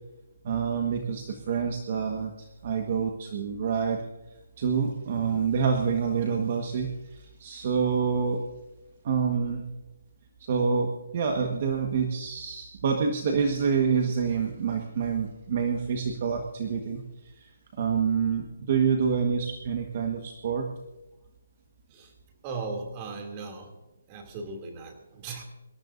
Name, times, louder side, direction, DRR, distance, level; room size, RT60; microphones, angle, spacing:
voice 1, 0.4-4.0 4.6-8.4 9.0-9.6 10.4-20.7, right 6 dB, 40° right, 3 dB, 1.5 m, -27 dB
voice 2, 22.4-23.8 24.1-25.4, right 4 dB, 20° right, 3 dB, 2.8 m, -37 dB
25.5 x 14.0 x 2.7 m, 0.99 s
hypercardioid pair, 165°, 0 cm